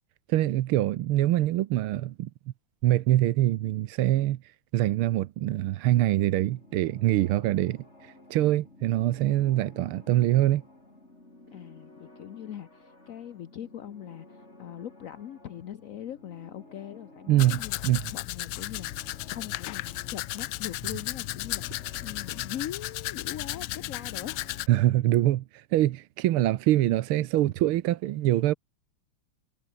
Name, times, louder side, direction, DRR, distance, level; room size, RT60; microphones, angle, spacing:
voice 1, 0.3-2.3 2.8-10.6 17.3-18.0 24.7-28.5, right 14 dB, 90° right, 1.7 m, -24 dB
sound 1, 5.9-24.6, left 2 dB, 30° left, 6.4 m, -53 dB
voice 2, 11.5-24.4, left 10 dB, 60° left, 0.8 m, -41 dB
Domestic sounds home sounds, 17.4-24.7, left 16 dB, 85° left, 1.5 m, -35 dB
omnidirectional pair, 2.3 m